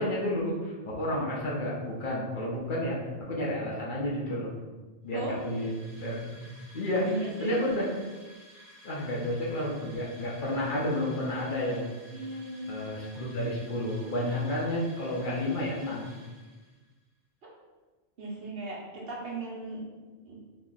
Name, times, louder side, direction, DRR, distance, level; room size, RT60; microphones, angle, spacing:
voice 1, 0.0-4.5 5.0-7.9 8.8-12.0 12.7-16.2, left 1 dB, 55° left, -5 dB, 0.7 m, -31 dB
sound 1, 5.1-16.9, equal, 15° right, 0.7 m, -54 dB
voice 2, 7.0-7.6 12.1-12.7 17.4-17.5 18.2-19.8 20.2-20.4, right 2 dB, 60° right, -4 dB, 0.9 m, -37 dB
2.9 x 2.1 x 3.7 m, 1.3 s
omnidirectional pair, 1.1 m